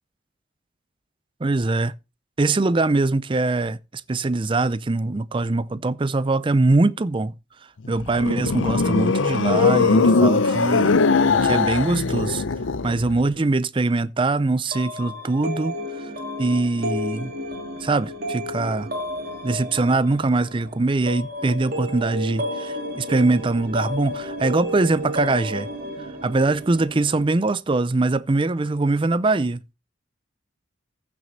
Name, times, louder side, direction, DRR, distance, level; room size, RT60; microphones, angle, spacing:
voice 1, 1.4-1.9 2.4-7.3 7.9-11.0 11.4-12.4 12.8-15.7 16.4-17.3 17.8-18.9 19.4-25.7 26.2-29.6, right 2 dB, 25° right, 0.4 m, -22 dB
sound 1, 7.8-13.2, left 4 dB, 75° left, 0.6 m, -20 dB
sound 2, 14.7-27.3, equal, 50° right, 2.3 m, -32 dB
15.0 x 6.1 x 4.1 m
head